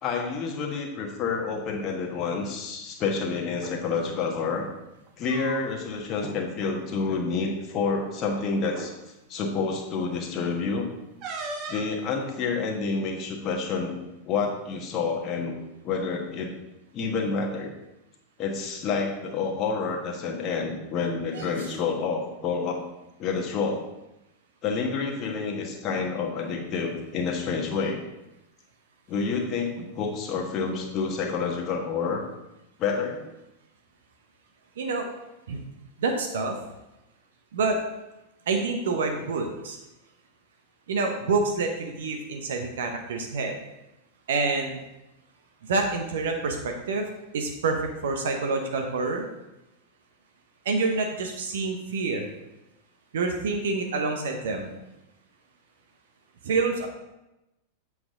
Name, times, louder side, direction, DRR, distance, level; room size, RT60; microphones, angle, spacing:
voice 1, 0.0-4.7 5.2-8.9 9.3-10.9 11.7-13.9 14.2-15.5 15.8-16.5 16.9-17.7 18.4-22.8 23.2-23.8 24.6-28.0 29.1-32.2 32.8-33.2, left 4 dB, 35° left, 0 dB, 1.3 m, -28 dB
sound 1, 3.5-3.8 5.0-5.9 6.2-6.4 6.7-7.0 7.9-8.0 8.7-8.9 11.2-11.9, right 3 dB, 40° right, 1.2 m, -37 dB
voice 2, 34.8-35.1 35.5-35.6 36.0-36.5 37.5-37.8 38.5-39.8 40.9-43.6 44.3-44.8 45.7-47.1 47.3-49.3 50.6-52.3 53.1-54.7 56.4-56.9, right 3 dB, 60° right, 3 dB, 0.8 m, -27 dB
7.7 x 6.0 x 3.7 m, 0.94 s
figure-of-eight pair, 90°, 0 cm